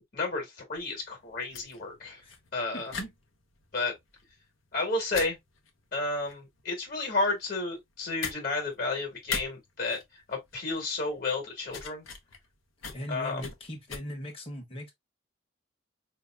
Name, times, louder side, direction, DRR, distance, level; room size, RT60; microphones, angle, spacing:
voice 1, 0.1-2.2 2.5-2.9 3.7-3.9 4.7-5.4 5.9-12.0 13.1-13.5, left 3 dB, 45° left, 1.4 m, -32 dB
sound 1, 0.8-14.0, left 5 dB, 80° left, 0.9 m, -42 dB
voice 2, 2.7-3.1 12.9-14.9, equal, 30° left, 1.1 m, -39 dB
4.7 x 2.8 x 2.3 m
head